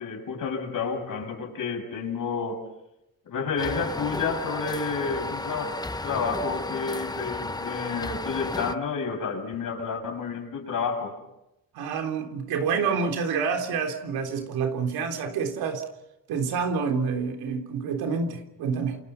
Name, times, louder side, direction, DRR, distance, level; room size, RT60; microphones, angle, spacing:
voice 1, 0.0-2.7 3.3-11.2, left 5 dB, 60° left, 6.8 m, -30 dB
sound 1, 3.6-8.7, left 2 dB, 10° left, 1.0 m, -33 dB
voice 2, 11.7-15.8 16.3-19.0, right 5 dB, 85° right, 3.6 m, -28 dB
28.0 x 27.5 x 5.8 m
cardioid pair, 85°, 36 cm